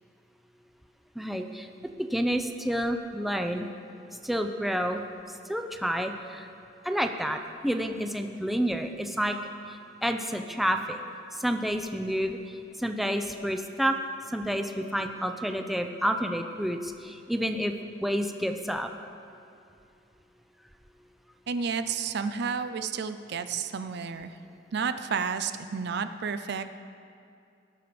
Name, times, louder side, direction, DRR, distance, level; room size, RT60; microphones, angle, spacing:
voice 1, 1.2-1.7 2.1-3.7 4.2-5.0 5.5-6.5 6.8-9.4 9.7-11.0 11.4-12.4 12.8-14.0 14.3-17.7 18.0-18.9, equal, ahead, 5 dB, 0.6 m, -29 dB
voice 2, 21.5-24.3 24.7-26.7, right 6 dB, 60° right, 10 dB, 0.5 m, -31 dB
18.5 x 6.7 x 5.2 m, 2.5 s
head